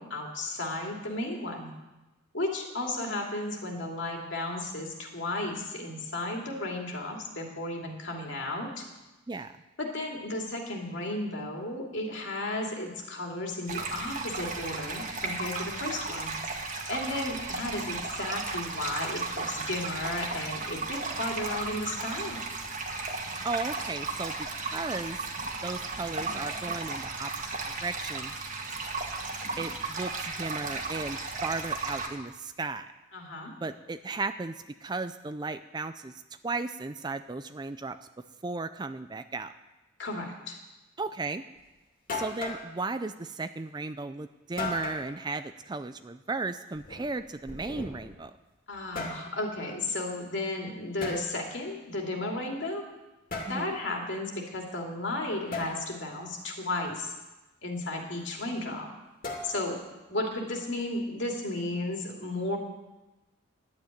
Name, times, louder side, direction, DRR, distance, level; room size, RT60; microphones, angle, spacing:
voice 1, 0.0-1.7 2.3-8.8 9.8-16.4 16.6-22.4 33.1-33.5 40.0-40.6 48.7-52.8 53.5-57.1 57.6-58.9 59.4-59.8 60.1-62.6, left 2 dB, 60° left, 0 dB, 2.7 m, -34 dB
sound 1, 13.7-32.1, right 3 dB, 40° right, 1.6 m, -35 dB
voice 2, 23.4-25.3 25.6-27.3 27.8-28.3 29.6-32.9 33.6-34.5 34.8-36.1 36.4-38.0 38.4-39.5 41.0-41.4 42.1-48.3 53.5-53.7, right 3 dB, 20° right, 11 dB, 0.4 m, -35 dB
sound 2, 41.6-41.7 42.1-42.7 44.6-45.1 46.7-48.2 48.7-49.3 51.0-51.2 53.3-53.6 55.5-55.7 59.2-59.8, left 3 dB, 45° left, 2.6 m, -36 dB
11.5 x 8.9 x 9.3 m, 1.0 s
head